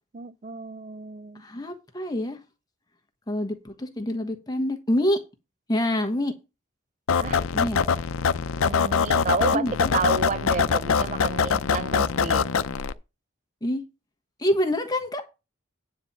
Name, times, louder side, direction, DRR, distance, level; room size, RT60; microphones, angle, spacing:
voice 1, 0.1-1.4 7.2-7.4 8.6-9.7 9.9-12.5, right 4 dB, 35° right, 0.4 m, -30 dB
voice 2, 1.4-2.4 3.3-5.2 5.7-6.3 7.5-7.8 9.5-9.7 13.6-13.8 14.4-15.2, left 1 dB, 20° left, 1.3 m, -26 dB
sound 1, 7.1-12.9, left 6 dB, 90° left, 0.6 m, -23 dB
9.9 x 4.2 x 7.4 m
head